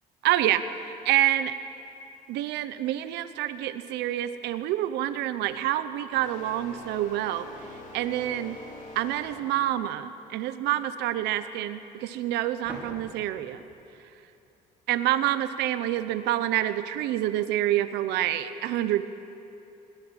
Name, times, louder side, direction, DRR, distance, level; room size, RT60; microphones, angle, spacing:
voice 1, 0.2-1.5 2.3-7.5 7.9-8.6 8.9-13.6 14.9-19.0, right 13 dB, 85° right, 12 dB, 0.8 m, -27 dB
sound 1, 5.5-5.7 6.1-9.7, left 2 dB, 50° left, 7.2 m, -45 dB
sound 2, 12.6-15.3, equal, 10° right, 6.1 m, -47 dB
21.0 x 17.5 x 8.9 m, 2.9 s
cardioid pair, 110°, 17 cm